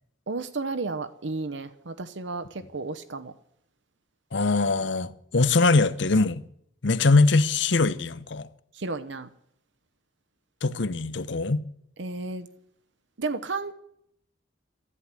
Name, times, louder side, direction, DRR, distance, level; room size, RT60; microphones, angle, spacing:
voice 1, 0.3-3.3 8.7-9.3 12.0-12.5 13.2-13.7, right 3 dB, 65° right, 0.9 m, -32 dB
voice 2, 4.3-6.4 6.8-8.5 10.6-11.6, left 3 dB, 65° left, 0.8 m, -22 dB
13.0 x 11.0 x 9.7 m
head